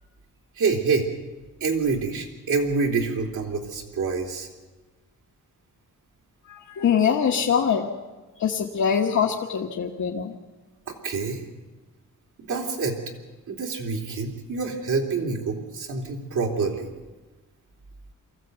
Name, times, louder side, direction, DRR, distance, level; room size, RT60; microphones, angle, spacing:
voice 1, 0.6-1.1 1.6-4.5 10.9-11.4 12.4-13.0 13.5-16.9, right 4 dB, 75° right, 0 dB, 3.2 m, -26 dB
voice 2, 6.5-7.9 8.4-10.4, left 7 dB, 65° left, 0 dB, 1.3 m, -23 dB
23.5 x 15.0 x 8.0 m, 1.3 s
wide cardioid pair, 180°, 31 cm